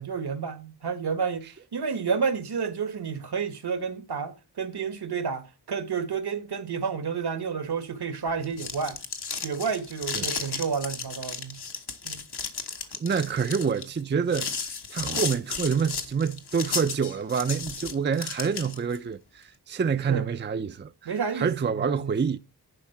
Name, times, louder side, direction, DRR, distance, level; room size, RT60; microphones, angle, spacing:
voice 1, 0.0-9.0 9.4-11.6 12.0-12.2 20.1-20.3 21.1-22.1, right 6 dB, 70° right, 1.4 m, -30 dB
sound 1, 8.3-19.0, left 5 dB, 70° left, 1.5 m, -34 dB
voice 2, 13.0-22.4, right 6 dB, 30° right, 0.5 m, -27 dB
11.0 x 4.0 x 5.8 m
cardioid pair, 55°, 40 cm